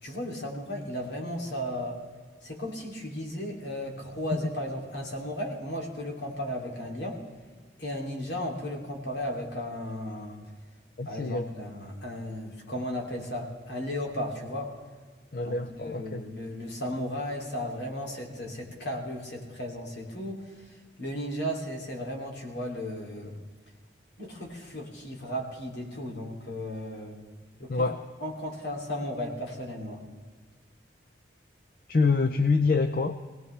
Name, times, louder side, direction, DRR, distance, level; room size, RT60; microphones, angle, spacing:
voice 1, 0.0-2.0 2.4-7.2 7.8-10.4 11.0-14.7 15.4-20.5 21.0-23.4 24.2-27.2 27.6-27.8 28.2-30.0, left 1 dB, 75° left, 0 dB, 2.8 m, -35 dB
voice 2, 11.0-11.5 15.3-16.2 27.7-28.0 31.9-33.2, left 4 dB, 50° left, 9 dB, 0.5 m, -26 dB
22.5 x 18.0 x 3.3 m, 1.4 s
head